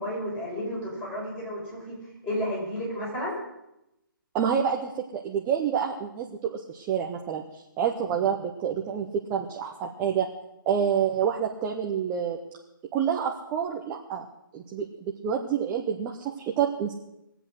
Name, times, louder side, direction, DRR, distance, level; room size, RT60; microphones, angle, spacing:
voice 1, 0.0-2.0 2.2-3.4, equal, 15° left, -5 dB, 5.4 m, -32 dB
voice 2, 4.3-10.3 10.7-12.4 12.9-14.3 14.5-16.9, right 8 dB, 15° right, 0 dB, 0.7 m, -28 dB
21.0 x 8.0 x 6.3 m, 0.87 s
hypercardioid pair, 155°, 12 cm